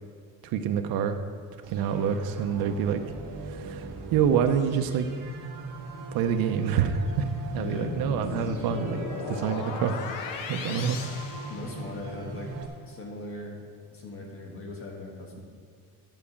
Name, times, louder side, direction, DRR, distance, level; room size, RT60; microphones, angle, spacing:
voice 1, 0.4-1.2 1.7-3.0 3.5-5.1 6.1-9.0 9.3-10.2 10.5-11.0, right 7 dB, 85° right, 6 dB, 0.7 m, -27 dB
sound 1, 1.6-12.7, right 2 dB, 65° right, 1.4 m, -40 dB
sound 2, 7.5-12.2, left 5 dB, 70° left, 1.0 m, -37 dB
voice 2, 7.6-8.0 10.7-11.1 11.5-12.5 12.8-13.6 13.9-15.4, left 2 dB, 40° left, 0 dB, 1.4 m, -39 dB
11.0 x 4.9 x 7.0 m, 2.1 s
cardioid pair, 170°, 34 cm